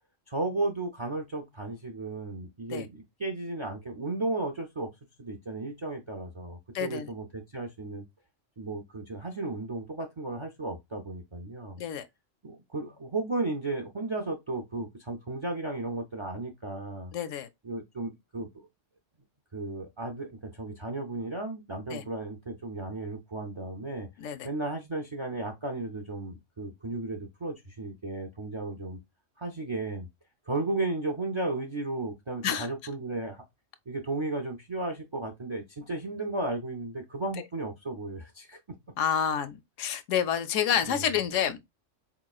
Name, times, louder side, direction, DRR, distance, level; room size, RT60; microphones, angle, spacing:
voice 1, 0.3-4.9 5.2-8.0 8.6-11.8 12.4-17.1 17.6-18.7 19.5-24.1 24.4-29.0 29.4-30.1 30.5-33.4 33.9-38.6 40.8-41.1, right 2 dB, 45° right, 0.4 m, -34 dB
voice 2, 6.7-7.1 11.8-12.0 17.1-17.5 21.9-22.0 24.2-24.5 32.4-32.7 39.0-41.7, left 8 dB, 80° left, 0.9 m, -29 dB
4.2 x 3.0 x 2.3 m
omnidirectional pair, 1.3 m